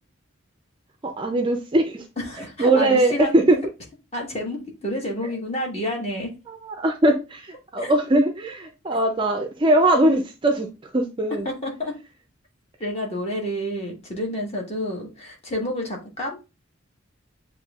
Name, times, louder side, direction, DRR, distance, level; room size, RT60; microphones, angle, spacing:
voice 1, 1.0-2.0 2.6-3.6 6.8-10.7 10.9-11.5, right 1 dB, 25° right, 0.4 m, -20 dB
voice 2, 2.2-3.3 4.1-6.3 7.8-7.9 11.4-11.9 12.8-16.4, left 1 dB, 30° left, 1.3 m, -29 dB
7.2 x 2.6 x 2.3 m
head